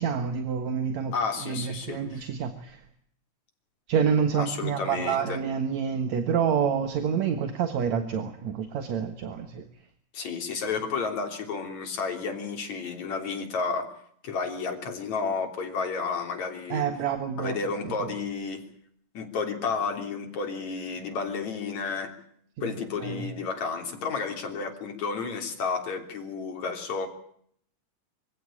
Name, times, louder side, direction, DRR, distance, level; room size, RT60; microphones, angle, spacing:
voice 1, 0.0-1.1 1.4-2.8 3.9-9.7 16.7-17.6 17.8-17.9 22.6-22.7 23.0-23.3, right 7 dB, 70° right, 8 dB, 2.8 m, -28 dB
voice 2, 1.1-2.3 4.4-5.4 10.1-13.9 14.2-16.8 17.4-18.6 19.1-22.1 22.6-27.1, left 5 dB, 70° left, 3 dB, 4.7 m, -31 dB
25.0 x 16.0 x 8.8 m, 0.66 s
omnidirectional pair, 3.3 m